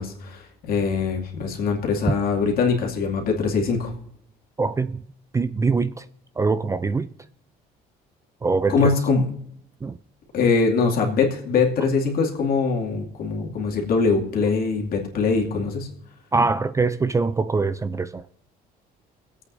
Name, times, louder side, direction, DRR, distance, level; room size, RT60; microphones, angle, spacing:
voice 1, 0.0-3.9 8.7-9.3 10.3-15.9, left 4 dB, 60° left, 2.5 m, -22 dB
voice 2, 4.6-5.0 5.3-6.1 6.4-7.1 8.4-8.9 9.8-10.0 16.3-18.2, right 4 dB, 20° right, 0.4 m, -23 dB
23.5 x 8.5 x 2.7 m
cardioid pair, 110°, 17 cm